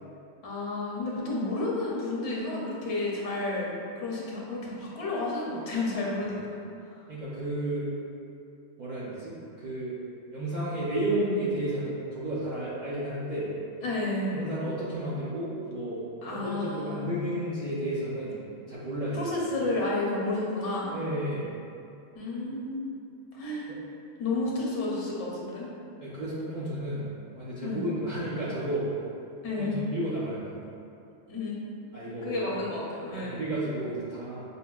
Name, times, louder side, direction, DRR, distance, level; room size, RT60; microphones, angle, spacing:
voice 1, 0.4-6.6 6.9-7.0 13.8-14.4 16.2-17.1 19.1-21.0 22.1-22.9 23.3-23.7 24.2-25.7 27.6-27.8 29.4-29.8 31.3-31.6 32.2-33.5, left 2 dB, 70° left, -4 dB, 0.9 m, -31 dB
voice 2, 7.1-7.9 8.8-10.0 10.3-13.5 14.3-16.0 16.3-18.4 18.7-19.2 20.9-21.5 26.0-27.1 27.4-28.9 29.6-30.5 31.9-32.5 33.1-34.4, right 1 dB, 60° right, -9 dB, 0.5 m, -32 dB
5.2 x 2.1 x 2.3 m, 2.6 s
omnidirectional pair, 1.3 m